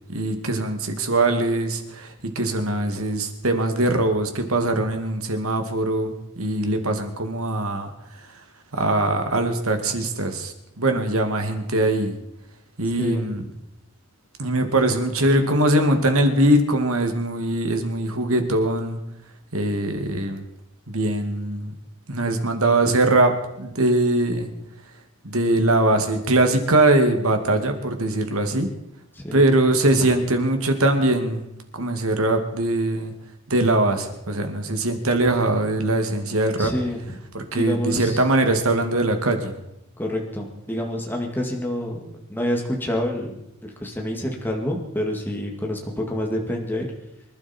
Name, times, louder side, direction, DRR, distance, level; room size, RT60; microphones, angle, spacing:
voice 1, 0.1-7.9 8.7-12.1 12.8-13.4 14.4-19.0 19.5-20.4 20.9-21.7 22.1-23.3 23.6-24.5 25.2-28.7 29.3-31.4 31.7-33.1 33.5-36.7 37.3-39.5, right 2 dB, 70° right, 5 dB, 2.2 m, -21 dB
voice 2, 13.0-13.5 29.1-29.5 36.6-37.2 37.5-38.2 40.0-46.9, left 1 dB, 10° left, 0 dB, 2.1 m, -28 dB
25.0 x 11.5 x 4.4 m, 0.85 s
head